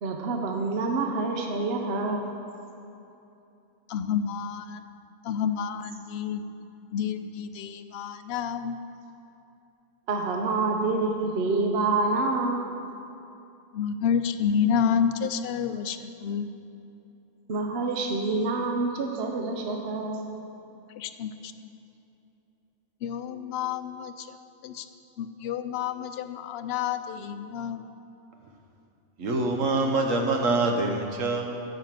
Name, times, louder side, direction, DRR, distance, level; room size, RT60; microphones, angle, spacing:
voice 1, 0.0-2.2 10.1-12.8 17.5-20.2, right 3 dB, 55° right, 2 dB, 1.0 m, -27 dB
voice 2, 3.9-4.8 5.2-6.4 6.9-8.8 13.7-16.5 21.0-21.5 23.0-24.3 24.6-24.9 25.2-27.8, left 7 dB, 65° left, 10 dB, 0.7 m, -29 dB
voice 3, 29.2-31.6, right 2 dB, 80° right, 3 dB, 1.4 m, -25 dB
10.5 x 5.7 x 7.4 m, 2.8 s
omnidirectional pair, 1.3 m